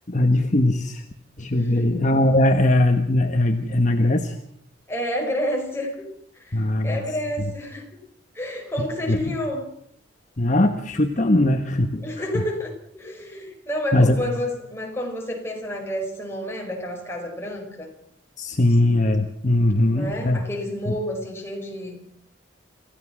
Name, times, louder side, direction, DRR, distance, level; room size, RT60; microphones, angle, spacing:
voice 1, 0.1-1.0 1.4-4.4 6.5-7.0 7.4-7.5 9.1-9.2 10.4-12.4 13.9-14.2 18.4-20.4 20.9-21.0, left 1 dB, 40° left, 5 dB, 1.2 m, -20 dB
voice 2, 1.5-2.1 4.9-6.0 6.3-8.0 8.4-9.7 12.0-17.9 19.8-22.0, equal, 15° left, 1 dB, 5.1 m, -30 dB
27.0 x 15.5 x 6.2 m, 0.68 s
head